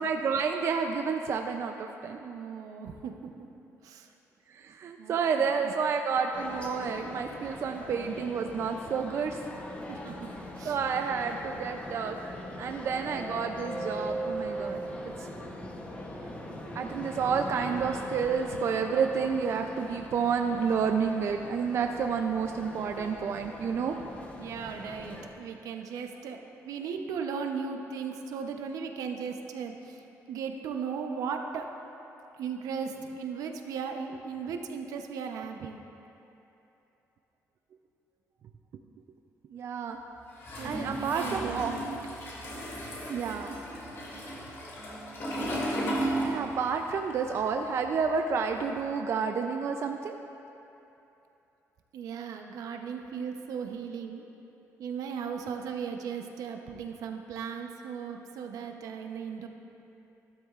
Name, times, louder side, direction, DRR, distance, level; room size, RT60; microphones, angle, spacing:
voice 1, 0.0-2.2 4.5-9.4 10.6-12.3 12.6-14.8 15.2-15.3 16.7-24.0 39.5-40.0 40.6-41.8 43.1-43.6 46.2-50.2, right 6 dB, 50° right, 4 dB, 0.4 m, -30 dB
voice 2, 2.2-3.5 3.8-4.1 5.0-5.7 9.9-10.3 10.6-10.8 24.4-30.0 30.3-31.8 32.4-35.8 40.6-41.9 51.9-54.3 54.8-59.5, right 6 dB, 85° right, 4 dB, 0.8 m, -37 dB
sound 1, 6.3-25.3, equal, 20° left, 0.9 m, -41 dB
Toilet flush, 40.4-46.8 47.1-48.7, right 1 dB, 45° left, 2.5 m, -35 dB
13.0 x 12.5 x 2.4 m, 2.9 s
cardioid pair, 145°, 6 cm